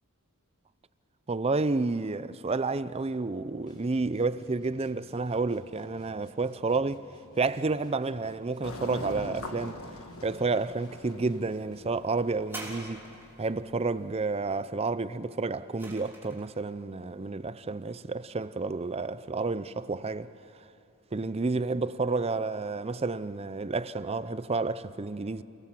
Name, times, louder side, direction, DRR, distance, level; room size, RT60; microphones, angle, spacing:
voice 1, 1.3-7.0 7.4-9.8 10.2-13.0 13.4-20.3 21.1-25.4, right 3 dB, 25° right, 0.5 m, -30 dB
sound 1, 3.7-12.1, equal, 20° left, 2.6 m, -58 dB
sound 2, 8.6-14.3, left 2 dB, 65° left, 1.7 m, -43 dB
sound 3, 12.4-13.5 15.2-16.6 17.4-17.5, right 1 dB, 10° right, 3.3 m, -44 dB
28.5 x 18.5 x 7.5 m
head